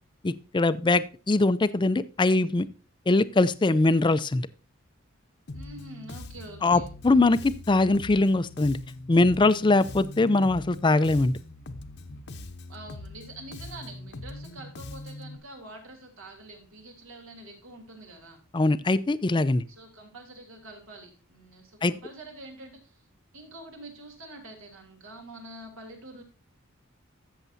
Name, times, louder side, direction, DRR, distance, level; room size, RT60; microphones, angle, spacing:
voice 1, 0.2-2.7 3.1-4.5 6.6-8.8 9.1-11.3 18.5-19.6 21.8-21.9, left 2 dB, 20° left, 15 dB, 0.4 m, -22 dB
Bass guitar, 5.5-15.4, left 2 dB, 55° left, 0.8 m, -42 dB
voice 2, 5.5-6.9 12.7-18.4 19.7-23.0 23.3-26.2, right 2 dB, 75° right, 2 dB, 3.1 m, -46 dB
13.5 x 7.2 x 2.6 m, 0.34 s
head